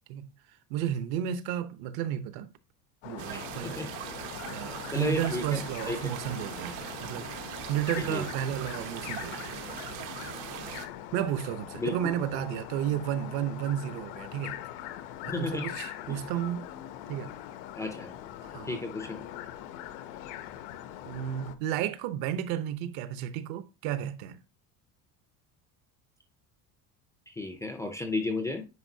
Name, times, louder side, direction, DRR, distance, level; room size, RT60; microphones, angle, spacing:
voice 1, 0.7-2.5 3.0-3.8 4.5-9.6 11.1-14.6 15.2-16.7 17.1-17.3 18.4-18.8 21.0-24.4, right 10 dB, 65° right, 0.9 m, -32 dB
sound 1, 3.0-21.5, left 12 dB, 75° left, 0.8 m, -42 dB
sound 2, 3.2-10.9, right 10 dB, 90° right, 1.3 m, -40 dB
voice 2, 3.3-3.9 4.9-6.0 8.0-8.3 11.8-12.1 15.3-15.7 16.1-16.2 17.7-18.2 18.7-19.2 27.3-28.7, left 2 dB, 10° left, 0.4 m, -33 dB
9.7 x 4.6 x 2.7 m
cardioid pair, 165°, 38 cm